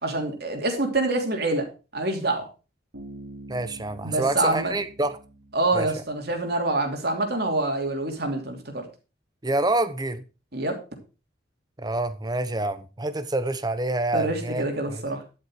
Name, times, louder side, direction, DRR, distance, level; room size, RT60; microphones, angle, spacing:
voice 1, 0.0-1.7 1.9-2.4 4.0-4.7 5.5-8.8 10.5-10.8 14.1-15.2, right 2 dB, 60° right, 3.0 m, -26 dB
Bass guitar, 2.9-6.6, right 1 dB, 85° right, 4.6 m, -45 dB
voice 2, 3.5-5.2 5.7-5.9 9.4-10.2 11.8-15.0, right 2 dB, 20° right, 0.9 m, -27 dB
11.5 x 8.0 x 4.8 m
head